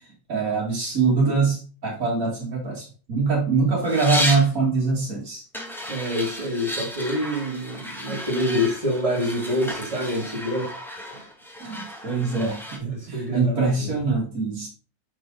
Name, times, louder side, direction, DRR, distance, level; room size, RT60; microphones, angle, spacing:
voice 1, 0.3-5.4 11.6-14.7, right 4 dB, 50° right, 1.9 m, -23 dB
sound 1, 3.8-4.5 5.5-12.8, equal, ahead, 0.9 m, -33 dB
voice 2, 5.9-10.7 11.1-11.3 12.8-13.9, left 1 dB, 20° right, 1.6 m, -27 dB
6.0 x 5.0 x 3.7 m
omnidirectional pair, 2.1 m